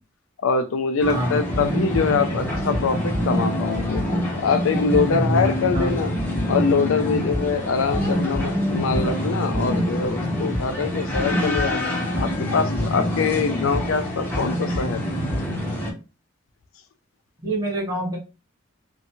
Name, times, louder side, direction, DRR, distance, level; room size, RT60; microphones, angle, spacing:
voice 1, 0.4-4.0 4.3-6.1 6.5-15.1, left 5 dB, 80° left, 0.4 m, -24 dB
sound 1, 1.0-15.9, equal, 10° left, 0.7 m, -25 dB
voice 2, 1.1-1.4 5.7-5.9 17.4-18.2, right 1 dB, 20° right, 1.0 m, -26 dB
2.7 x 2.2 x 2.6 m
head